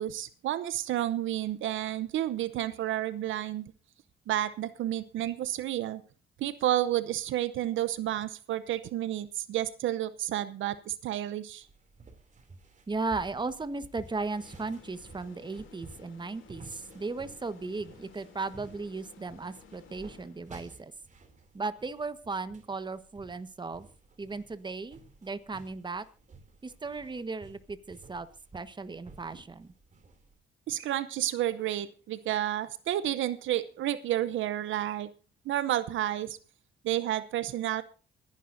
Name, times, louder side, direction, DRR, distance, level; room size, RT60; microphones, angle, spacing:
voice 1, 0.0-3.7 4.3-6.0 6.4-11.7 30.7-35.1 35.5-36.4 36.8-37.8, right 13 dB, 75° right, 15 dB, 0.8 m, -31 dB
sound 1, 11.6-30.4, right 3 dB, 40° right, 2.8 m, -54 dB
voice 2, 12.9-20.9 21.5-23.9 24.2-26.0 26.6-28.3 28.5-29.7, right 3 dB, 20° right, 12 dB, 1.3 m, -36 dB
sound 2, 14.2-20.8, left 6 dB, 80° left, 2.9 m, -55 dB
25.5 x 11.0 x 2.7 m, 0.36 s
cardioid pair, 90°, 20 cm